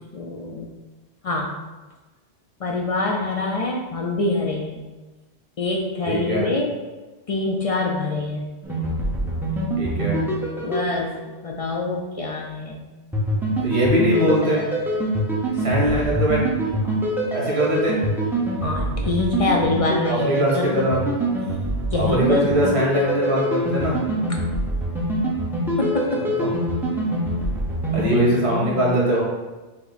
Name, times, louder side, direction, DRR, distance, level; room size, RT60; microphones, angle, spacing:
voice 1, 0.1-0.7 1.2-1.5 2.6-4.8 5.6-6.7 7.3-8.5 10.6-12.8 18.6-21.1 21.9-22.7 25.8-26.2 28.0-28.2 28.5-28.9, left 2 dB, 60° left, 0 dB, 0.3 m, -25 dB
voice 2, 6.0-6.5 9.8-10.2 13.6-14.6 15.6-16.4 17.3-18.0 20.1-21.1 22.0-24.0 26.4-26.5 27.9-29.2, equal, 70° right, -4 dB, 1.6 m, -21 dB
sound 1, 8.6-11.6 13.1-28.2, right 1 dB, ahead, 0.6 m, -25 dB
5.5 x 2.1 x 4.0 m, 1.2 s
omnidirectional pair, 1.1 m